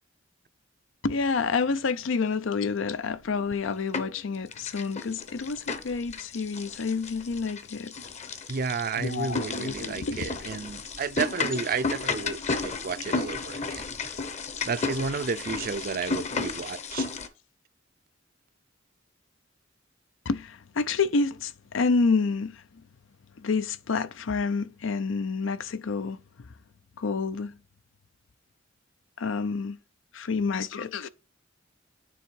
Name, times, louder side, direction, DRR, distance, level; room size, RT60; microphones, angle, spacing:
voice 1, 1.0-7.9 9.0-10.5 20.3-22.8 23.4-26.2 27.0-27.6 29.2-29.8 30.1-31.1, left 4 dB, 85° left, 0.5 m, -28 dB
sound 1, 3.3-4.2 4.5-17.3, left 4 dB, 35° left, 0.8 m, -33 dB
voice 2, 8.5-13.8 14.7-17.1, right 5 dB, 50° right, 0.5 m, -32 dB
9.3 x 3.6 x 4.5 m
head